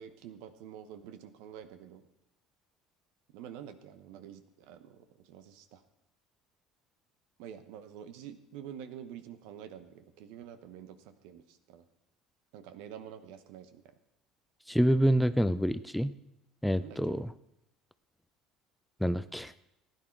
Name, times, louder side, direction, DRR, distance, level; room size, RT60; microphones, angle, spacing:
voice 1, 0.0-2.0 3.3-5.8 7.4-11.8 12.5-13.9 16.8-17.2, right 9 dB, 70° right, 11 dB, 0.9 m, -48 dB
voice 2, 14.7-16.1 16.6-17.3 19.0-19.5, equal, ahead, 13 dB, 0.5 m, -27 dB
15.5 x 10.0 x 4.5 m, 0.86 s
hypercardioid pair, 70°, 0 cm